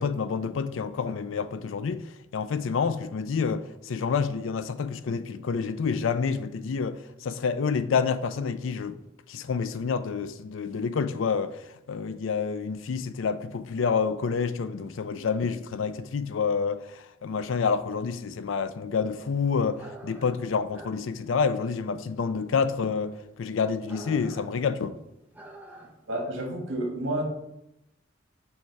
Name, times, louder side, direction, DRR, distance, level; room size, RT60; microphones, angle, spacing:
voice 1, 0.0-2.0 2.3-9.0 9.3-11.6 11.9-24.9, left 5 dB, 85° left, 0.4 m, -28 dB
sound 1, 19.7-26.2, right 2 dB, 10° right, 0.7 m, -48 dB
voice 2, 26.1-27.2, right 1 dB, 75° right, 1.5 m, -30 dB
7.2 x 3.3 x 4.6 m
head